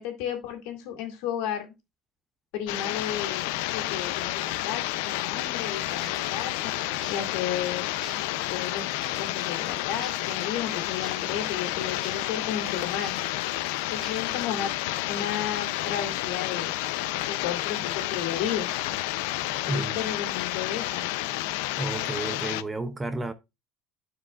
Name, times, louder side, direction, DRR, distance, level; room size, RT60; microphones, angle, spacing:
voice 1, 0.0-1.7 2.5-6.7 7.1-7.8 8.5-13.2 13.9-14.7 15.1-16.7 17.3-18.7 19.7-21.1, left 9 dB, 65° left, 2.1 m, -33 dB
sound 1, 2.7-22.6, left 16 dB, 85° left, 0.5 m, -30 dB
sound 2, 5.7-14.5, left 1 dB, 5° left, 4.5 m, -48 dB
voice 2, 21.8-23.3, right 2 dB, 10° right, 0.5 m, -31 dB
12.5 x 4.7 x 2.4 m
cardioid pair, 165°, 0 cm